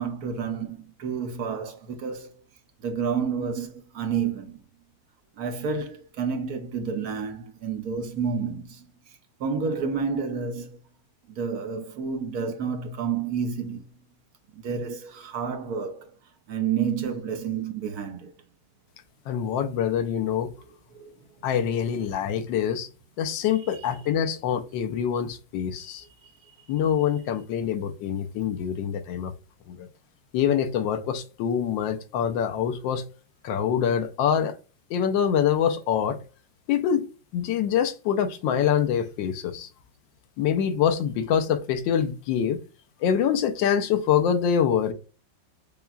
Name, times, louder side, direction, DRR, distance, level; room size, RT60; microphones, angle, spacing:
voice 1, 0.0-2.4 2.8-4.6 5.4-8.9 9.4-10.8 11.3-13.9 14.5-16.1 16.5-18.3 20.6-21.1 22.3-22.4 23.6-23.8 26.0-26.5, right 6 dB, 60° right, 1.1 m, -30 dB
voice 2, 19.3-20.5 21.4-22.9 23.2-26.0 26.7-29.3 29.7-29.9 30.3-33.0 33.4-34.5 34.9-36.2 36.7-37.1 37.3-39.7 40.4-42.6 43.0-44.9, left 8 dB, 75° left, 1.3 m, -25 dB
6.8 x 2.3 x 2.3 m
omnidirectional pair, 2.1 m